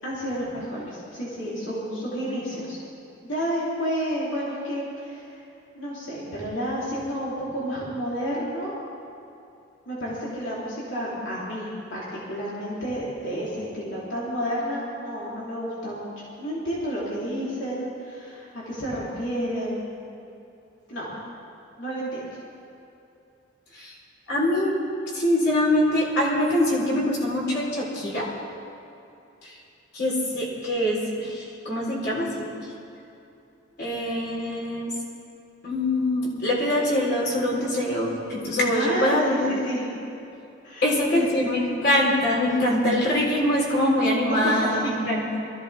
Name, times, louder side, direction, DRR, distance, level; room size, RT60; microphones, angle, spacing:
voice 1, 0.0-2.8 3.2-5.4 5.7-8.7 9.8-19.9 20.9-21.1 21.8-22.2 38.6-39.9 40.6-41.5 44.3-44.9, equal, 75° left, -8 dB, 3.4 m, -30 dB
voice 2, 24.3-24.7 25.1-28.3 29.9-32.5 33.8-34.9 35.6-39.5 40.8-45.2, left 1 dB, 55° left, -4 dB, 3.9 m, -24 dB
22.5 x 14.5 x 3.5 m, 2.7 s
head